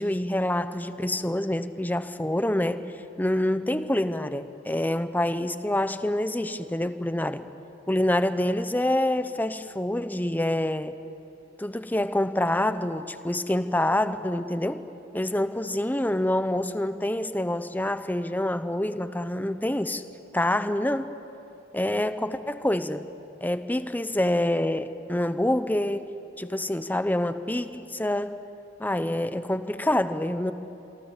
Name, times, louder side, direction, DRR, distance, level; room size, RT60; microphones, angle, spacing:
voice 1, 0.0-2.8 3.2-7.4 7.9-10.9 11.6-14.8 15.1-20.0 20.3-21.1 21.7-23.1 23.4-26.1 26.4-28.4 28.8-30.5, left 1 dB, 10° left, 11 dB, 0.8 m, -26 dB
26.5 x 23.5 x 7.3 m, 2.8 s
head